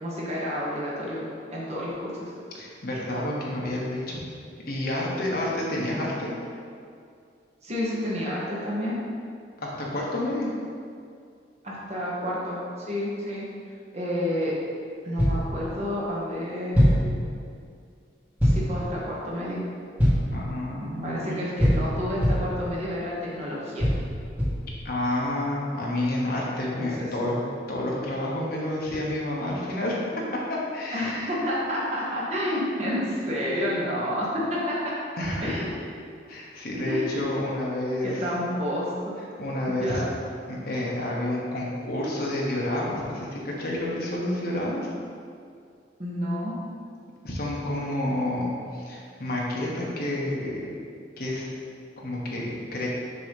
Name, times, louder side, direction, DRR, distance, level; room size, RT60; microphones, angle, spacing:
voice 1, 0.0-2.3 7.6-9.0 11.6-13.4 13.9-14.5 15.0-17.0 18.4-19.6 20.8-23.9 26.8-27.1 30.9-34.9 35.4-35.8 36.8-37.2 38.0-39.1 39.7-40.1 46.0-46.6, equal, 40° right, -6 dB, 1.3 m, -30 dB
voice 2, 2.5-4.2 4.6-6.3 9.6-10.5 20.3-21.4 24.8-27.4 27.7-30.1 30.5-31.4 35.2-35.5 36.3-38.1 39.4-40.0 40.4-44.8 47.2-50.6 51.2-51.5 52.0-52.9, left 1 dB, 55° left, -4 dB, 1.3 m, -29 dB
sound 1, 15.2-15.5 16.7-17.1 18.4-18.8 20.0-20.4 21.6-22.6 23.8-24.7, equal, 10° right, 1.5 m, -22 dB
6.8 x 3.1 x 5.3 m, 2.3 s
head